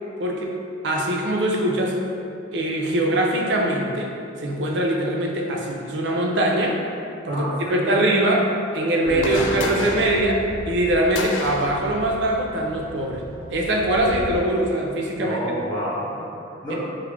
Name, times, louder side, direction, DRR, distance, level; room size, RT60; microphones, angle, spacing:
voice 1, 0.2-0.5 0.8-2.0 2.5-4.1 4.4-6.8 7.2-13.2 13.5-15.4, right 1 dB, 70° right, 0 dB, 0.4 m, -22 dB
voice 2, 7.3-8.0 9.0-9.9 15.2-16.8, equal, 25° left, -9 dB, 1.0 m, -30 dB
sound 1, 9.1-14.4, left 2 dB, 75° left, 0.3 m, -33 dB
3.1 x 2.4 x 3.3 m, 2.5 s
head